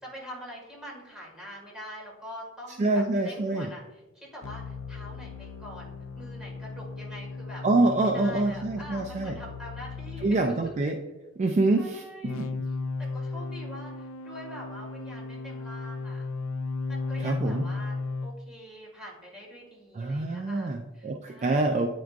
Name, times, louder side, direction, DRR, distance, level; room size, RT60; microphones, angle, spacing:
voice 1, 0.0-7.7 8.0-10.5 11.8-12.5 13.0-16.3 16.9-18.0 18.2-21.9, equal, 5° right, -5 dB, 2.0 m, -44 dB
voice 2, 2.8-3.7 7.6-9.4 10.2-11.0 11.4-12.5 17.2-17.7 20.0-21.9, right 2 dB, 35° right, 4 dB, 0.3 m, -26 dB
sound 1, 4.4-10.4 12.2-18.3, left 3 dB, 75° left, 0.4 m, -36 dB
9.2 x 4.6 x 2.5 m, 1.1 s
head